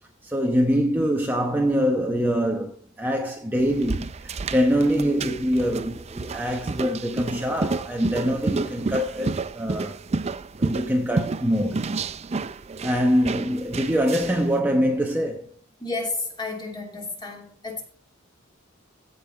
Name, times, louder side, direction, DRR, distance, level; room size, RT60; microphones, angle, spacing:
voice 1, 0.2-10.0 10.6-12.0 12.8-15.6, equal, 10° right, 0.9 m, -24 dB
sound 1, 3.6-14.5, right 3 dB, 30° right, 0.4 m, -30 dB
voice 2, 15.8-17.8, left 3 dB, 20° left, 3.0 m, -31 dB
16.0 x 5.5 x 4.4 m
head